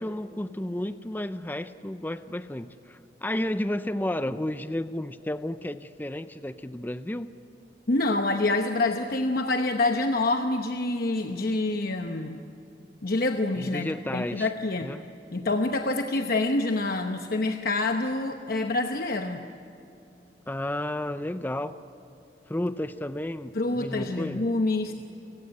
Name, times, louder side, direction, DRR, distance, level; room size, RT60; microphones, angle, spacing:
voice 1, 0.0-7.3 13.6-14.5 14.8-15.0 20.5-21.8 22.5-24.5, left 1 dB, 10° left, 11 dB, 0.5 m, -32 dB
voice 2, 7.9-12.4 13.0-14.9 15.3-19.4 23.5-24.9, left 2 dB, 55° left, 5 dB, 1.0 m, -26 dB
30.0 x 17.5 x 9.7 m, 2.6 s
head